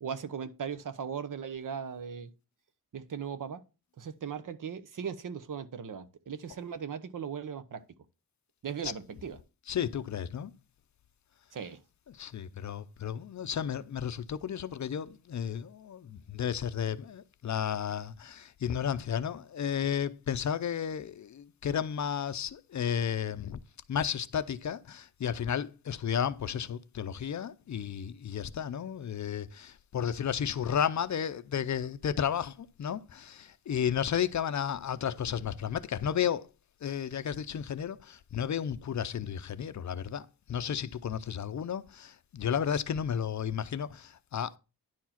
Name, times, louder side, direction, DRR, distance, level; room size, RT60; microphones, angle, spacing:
voice 1, 0.0-2.3 2.9-3.6 4.0-7.8 8.6-9.4 11.5-11.8, right 7 dB, 60° right, 1.0 m, -38 dB
voice 2, 9.7-10.5 12.1-23.6 23.9-36.5 36.8-44.6, left 8 dB, 50° left, 0.6 m, -33 dB
10.5 x 4.6 x 5.8 m
wide cardioid pair, 165°, 37 cm